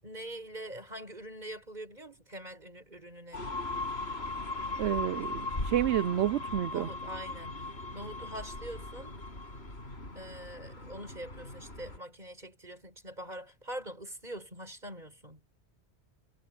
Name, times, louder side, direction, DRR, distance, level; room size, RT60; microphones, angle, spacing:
voice 1, 0.0-3.4 6.7-7.5 7.9-9.2 10.1-15.4, right 1 dB, 40° right, 6.5 m, -44 dB
sound 1, 3.3-12.0, left 2 dB, 70° left, 6.8 m, -38 dB
voice 2, 4.8-6.9, right 12 dB, 90° right, 0.9 m, -29 dB
omnidirectional pair, 1.1 m